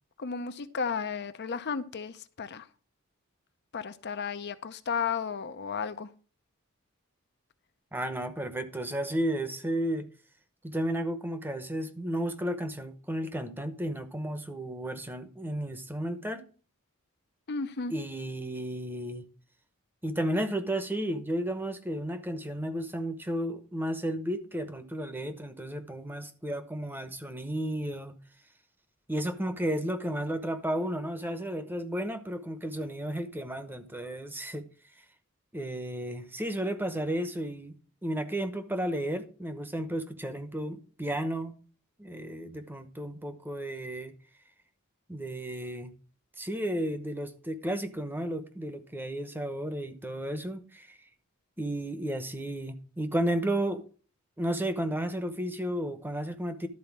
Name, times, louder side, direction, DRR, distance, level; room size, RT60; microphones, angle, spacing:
voice 1, 0.2-2.7 3.7-6.1 17.5-17.9, left 5 dB, 50° left, 0.6 m, -33 dB
voice 2, 7.9-10.1 10.6-16.4 17.9-19.2 20.0-28.1 29.1-34.6 35.5-37.8 38.0-41.6 42.0-44.1 45.1-45.9 46.4-51.1 51.6-53.9 54.4-56.7, right 1 dB, 10° right, 0.9 m, -33 dB
12.0 x 4.3 x 7.2 m
head